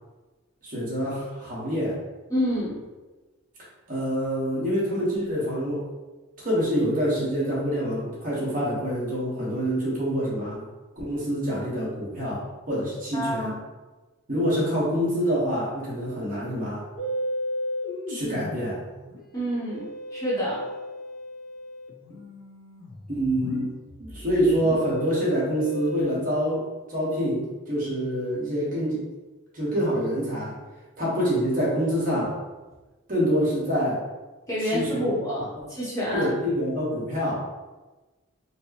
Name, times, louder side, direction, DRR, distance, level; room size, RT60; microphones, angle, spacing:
voice 1, 0.6-2.0 3.9-5.8 6.4-10.6 11.0-13.6 14.3-16.8 18.1-18.8 23.1-23.7 24.0-26.6 26.9-29.0 29.5-30.5 31.0-32.4 33.1-34.0 34.6-35.2 36.1-37.4, equal, 40° right, -7 dB, 1.1 m, -26 dB
voice 2, 2.3-2.8 13.1-13.6 19.3-19.9 20.1-20.6 34.5-36.3, equal, 15° left, -8 dB, 0.8 m, -27 dB
Musical instrument, 17.0-26.0, equal, 65° left, 0.6 m, -35 dB
4.3 x 2.1 x 2.9 m, 1.2 s
head